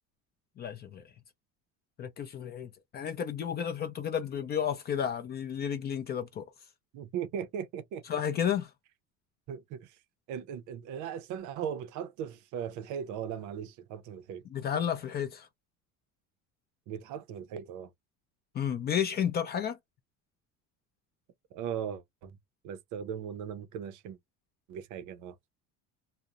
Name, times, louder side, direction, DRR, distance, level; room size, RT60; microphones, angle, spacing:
voice 1, 0.6-1.0 2.0-6.4 8.1-8.7 14.5-15.5 18.5-19.8, left 8 dB, 30° left, 0.3 m, -32 dB
voice 2, 6.9-8.0 9.5-10.0 10.3-14.4 16.9-17.9 21.5-22.4 22.6-24.2 24.7-25.3, right 8 dB, 55° right, 0.5 m, -38 dB
2.7 x 2.0 x 2.3 m
cardioid pair, 150°, 36 cm